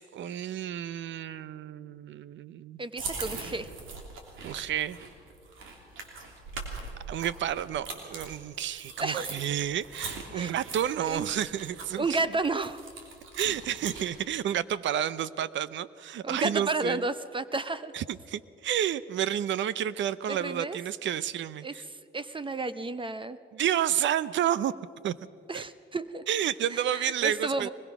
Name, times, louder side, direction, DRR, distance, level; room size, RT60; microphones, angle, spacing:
voice 1, 0.0-2.8 4.4-5.0 7.1-12.1 13.4-17.0 17.9-21.8 23.5-24.7 25.0-25.2 25.5-25.6 26.3-27.7, right 10 dB, 70° right, 17 dB, 0.7 m, -30 dB
voice 2, 2.8-3.7 9.0-9.4 10.3-10.5 11.0-11.3 12.0-12.8 16.2-17.9 20.3-20.8 21.6-23.4 25.5-26.2 26.7-27.7, right 3 dB, 25° right, 13 dB, 0.7 m, -32 dB
sound 1, 3.0-14.2, right 4 dB, 90° right, 3.2 m, -41 dB
23.0 x 20.5 x 6.1 m, 2.5 s
cardioid pair, 90°, 20 cm